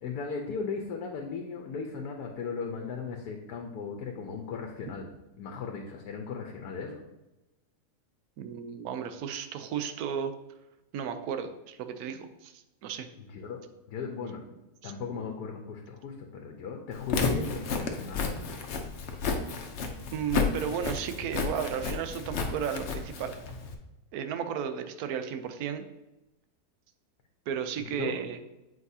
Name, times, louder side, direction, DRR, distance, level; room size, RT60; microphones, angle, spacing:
voice 1, 0.0-5.1 5.4-7.0 13.3-13.6 13.9-14.4 14.8-18.6 27.8-28.1, left 5 dB, 80° left, 2 dB, 1.3 m, -37 dB
voice 2, 8.4-10.3 10.9-13.1 14.8-14.9 20.1-23.3 24.1-25.8 27.5-28.4, right 8 dB, 75° right, 9 dB, 1.1 m, -34 dB
Walk footsteps, 16.9-23.7, left 4 dB, 55° left, 0.8 m, -32 dB
8.0 x 4.8 x 2.7 m, 0.98 s
omnidirectional pair, 1.7 m